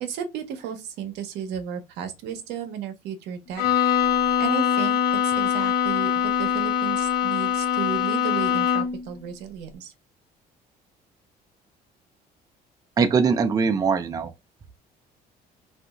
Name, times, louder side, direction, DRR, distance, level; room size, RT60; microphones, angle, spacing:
voice 1, 0.0-3.6 4.0-9.9, right 8 dB, 85° right, 0.7 m, -34 dB
Bowed string instrument, 3.6-9.1, left 8 dB, 65° left, 0.4 m, -23 dB
voice 2, 13.0-14.3, right 5 dB, 20° right, 0.3 m, -21 dB
2.7 x 2.4 x 2.3 m
cardioid pair, 110°, 17 cm